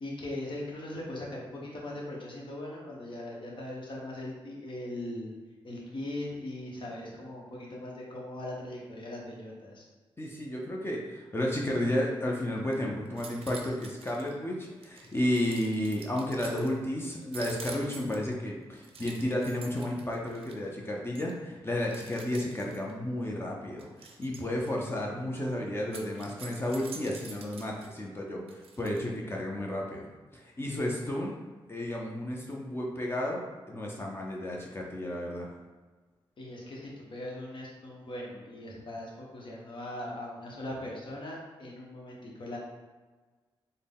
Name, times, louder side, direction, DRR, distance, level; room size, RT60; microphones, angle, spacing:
voice 1, 0.0-5.3 5.6-9.8 36.4-42.6, left 1 dB, 60° left, -3 dB, 1.0 m, -40 dB
voice 2, 10.2-30.1 30.3-31.3 31.7-35.5, left 1 dB, 25° left, -2 dB, 0.6 m, -32 dB
sound 1, 12.5-12.7 13.1-14.3 14.8-16.7 17.2-18.3 18.8-20.7 21.1-21.3 21.9-22.9 23.8-24.7 25.8-27.9 28.5-29.0, right 5 dB, 75° right, 0.5 m, -47 dB
3.8 x 2.2 x 3.5 m, 1.3 s
cardioid pair, 65°, 10 cm